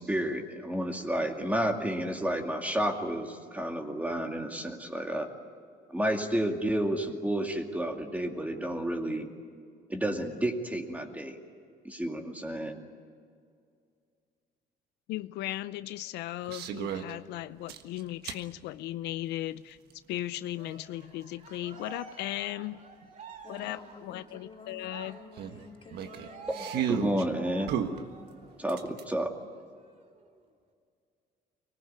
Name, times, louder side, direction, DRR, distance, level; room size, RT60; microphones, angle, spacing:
voice 1, 0.0-5.3 5.9-9.3 9.9-11.3 11.8-12.8 26.5-27.7 28.6-29.3, right 1 dB, 10° right, 3 dB, 2.3 m, -31 dB
voice 2, 15.1-19.8 20.1-22.8 23.5-25.2, left 14 dB, 85° left, 14 dB, 0.6 m, -37 dB
sound 1, 16.5-17.1 17.7-18.4 19.9-20.0 22.7-22.8 23.0-23.1 23.6-23.7 25.4-27.2 27.7-29.1, right 8 dB, 75° right, 1.5 m, -34 dB
Cheering, 20.5-28.5 28.9-29.1 29.4-30.4, right 5 dB, 50° right, 2.7 m, -49 dB
voice 3, 23.4-26.5, left 4 dB, 30° left, 2 dB, 3.0 m, -51 dB
24.5 x 19.5 x 9.6 m, 2.3 s
cardioid pair, 110°, 17 cm